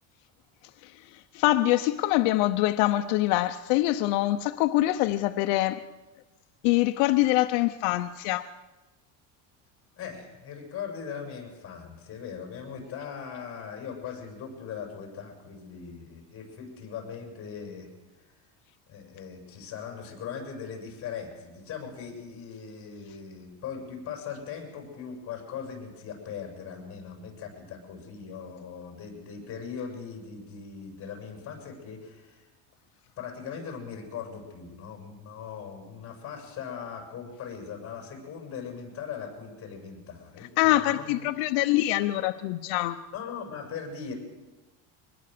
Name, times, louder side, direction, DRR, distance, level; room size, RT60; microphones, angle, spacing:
voice 1, 0.8-5.8 6.6-8.5 40.6-43.0, left 16 dB, 85° left, 8 dB, 0.9 m, -24 dB
voice 2, 10.0-17.9 18.2-18.3 18.9-32.5 33.2-41.2 43.1-44.1, left 6 dB, 35° left, 2 dB, 6.7 m, -40 dB
24.0 x 20.0 x 6.8 m, 1.1 s
cardioid pair, 155°, 38 cm